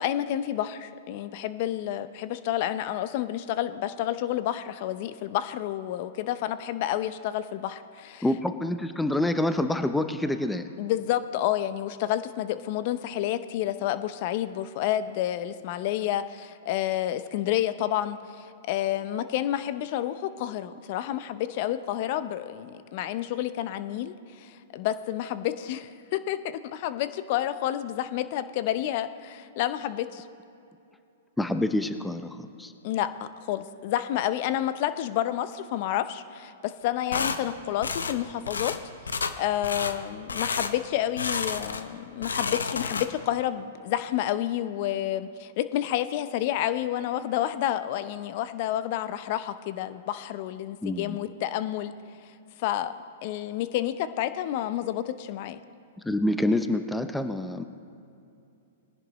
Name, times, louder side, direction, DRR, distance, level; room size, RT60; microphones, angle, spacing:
voice 1, 0.0-8.2 10.8-30.3 32.8-38.8 39.1-51.9 52.6-52.9 53.2-55.6, left 12 dB, 50° left, 12 dB, 0.6 m, -29 dB
voice 2, 8.2-10.7 31.4-32.7 50.8-51.2 56.0-57.6, left 1 dB, 5° left, 9 dB, 0.6 m, -27 dB
sound 1, 37.1-37.4 37.8-38.2 38.5-38.8 39.1-39.4 39.6-40.0 40.3-40.7 41.2-41.9 42.1-43.3, left 5 dB, 90° left, 0.7 m, -30 dB
21.0 x 10.5 x 3.0 m, 2.6 s
hypercardioid pair, 120°, 0 cm